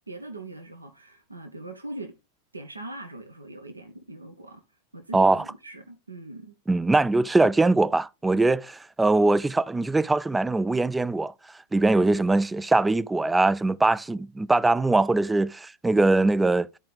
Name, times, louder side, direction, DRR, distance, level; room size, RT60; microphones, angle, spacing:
voice 1, 0.1-2.2 2.5-4.6 4.9-6.5, right 2 dB, 80° right, 0.9 m, -41 dB
voice 2, 5.1-5.4 6.7-11.3 11.7-16.7, right 2 dB, 10° right, 0.3 m, -22 dB
12.5 x 4.7 x 3.5 m
figure-of-eight pair, 90°, 0 cm